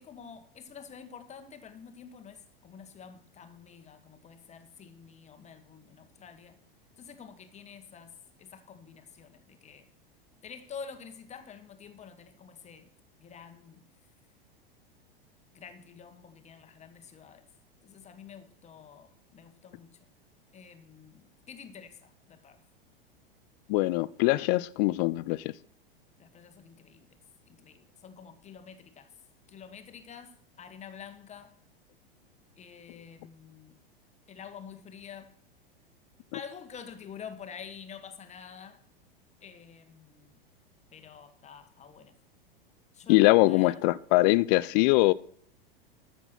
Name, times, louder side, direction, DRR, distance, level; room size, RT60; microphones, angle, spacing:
voice 1, 0.0-6.6 7.0-9.9 10.4-12.9 13.2-13.8 15.5-17.5 17.8-20.1 20.5-22.6 26.2-27.2 27.5-29.1 29.5-31.6 32.6-33.8 34.3-35.3 36.3-38.8 39.4-40.4 40.9-42.2 42.9-43.8, left 7 dB, 25° left, 1.4 m, -48 dB
voice 2, 23.7-25.5 43.1-45.1, left 21 dB, 45° left, 0.6 m, -23 dB
13.5 x 6.1 x 6.1 m
hypercardioid pair, 95°, 30 cm